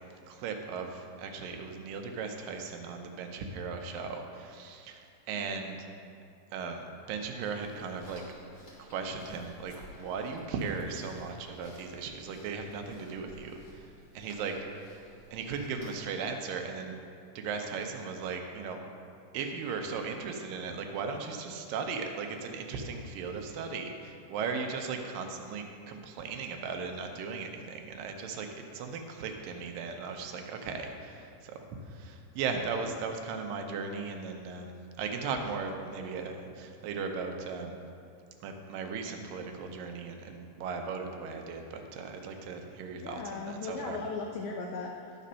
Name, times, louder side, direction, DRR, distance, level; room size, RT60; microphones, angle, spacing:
voice 1, 0.3-5.9 6.5-8.2 8.8-14.8 15.3-17.0 17.4-18.8 19.3-28.5 28.7-37.9 38.4-43.2 43.5-44.0, right 5 dB, 85° right, 4 dB, 2.4 m, -37 dB
sound 1, 7.2-16.2, equal, 25° left, 2.1 m, -55 dB
voice 2, 43.0-45.3, left 3 dB, 80° left, 1 dB, 1.6 m, -38 dB
11.5 x 5.0 x 5.5 m, 2.4 s
omnidirectional pair, 3.9 m